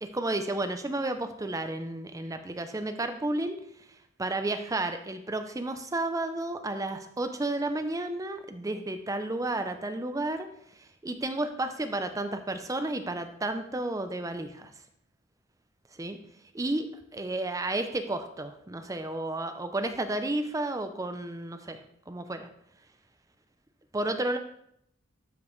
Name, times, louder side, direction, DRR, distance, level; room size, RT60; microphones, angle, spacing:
voice 1, 0.0-3.6 4.2-10.5 11.0-14.7 16.0-16.2 16.5-16.9 17.1-21.8 22.1-22.5 23.9-24.4, right 2 dB, 15° right, 8 dB, 0.5 m, -32 dB
12.0 x 5.1 x 3.1 m, 0.71 s
head